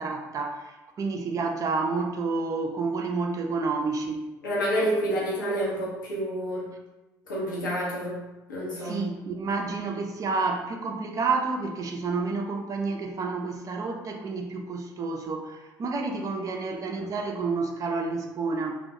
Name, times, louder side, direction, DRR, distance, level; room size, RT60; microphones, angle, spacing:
voice 1, 0.0-4.3 8.8-18.8, right 4 dB, 35° right, 3 dB, 0.4 m, -29 dB
voice 2, 4.4-6.7 7.3-9.1, equal, 80° left, -6 dB, 0.6 m, -29 dB
2.2 x 2.2 x 2.7 m, 1.1 s
figure-of-eight pair, 55°, 10 cm